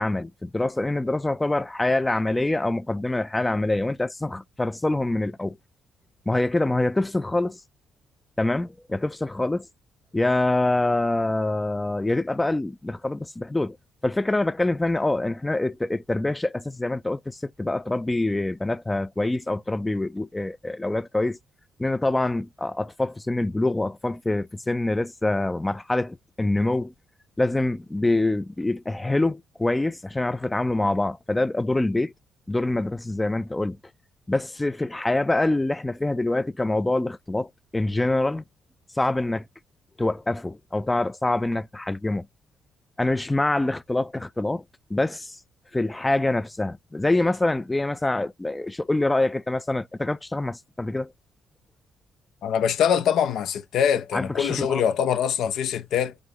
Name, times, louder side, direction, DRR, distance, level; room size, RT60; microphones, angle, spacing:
voice 1, 0.0-5.6 6.3-7.6 8.4-9.7 10.1-13.8 14.0-21.4 21.8-26.9 27.4-32.1 32.5-33.8 34.3-38.4 39.0-39.4 40.0-42.3 43.0-44.6 44.9-45.4 45.7-51.1 54.1-54.8, left 2 dB, 15° left, 0.4 m, -25 dB
voice 2, 52.4-56.2, left 8 dB, 75° left, 0.8 m, -23 dB
5.1 x 2.7 x 3.7 m
cardioid pair, 90°, 0 cm